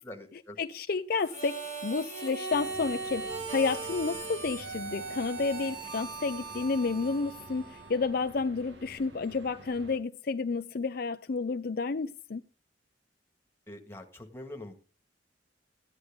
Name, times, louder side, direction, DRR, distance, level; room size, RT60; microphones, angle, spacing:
voice 1, 0.0-0.6 13.7-14.7, left 1 dB, 15° left, 1.9 m, -44 dB
voice 2, 0.6-12.4, left 4 dB, 55° left, 0.5 m, -31 dB
Harmonica, 1.2-8.1, right 4 dB, 40° right, 4.9 m, -39 dB
sound 1, 2.5-10.0, right 1 dB, 70° right, 1.8 m, -50 dB
14.5 x 9.7 x 3.7 m
head